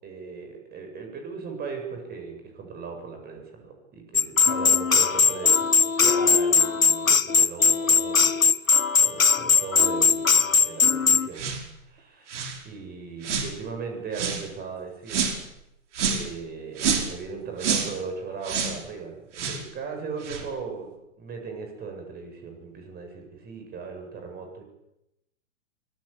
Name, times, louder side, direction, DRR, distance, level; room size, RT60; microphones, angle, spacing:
voice 1, 0.0-11.4 11.8-15.2 16.1-24.6, right 5 dB, 25° right, 3 dB, 7.4 m, -38 dB
sound 1, 4.1-11.3, left 5 dB, 90° left, 1.1 m, -20 dB
sound 2, 11.4-11.6 12.3-12.6 13.2-13.5 14.1-14.4 15.1-15.4 15.9-16.3 16.8-17.2 17.6-17.9 18.4-18.8 19.4-19.6 20.2-20.4, right 6 dB, 60° right, 5.4 m, -27 dB
24.0 x 21.0 x 8.5 m, 0.88 s
figure-of-eight pair, 110°, 39 cm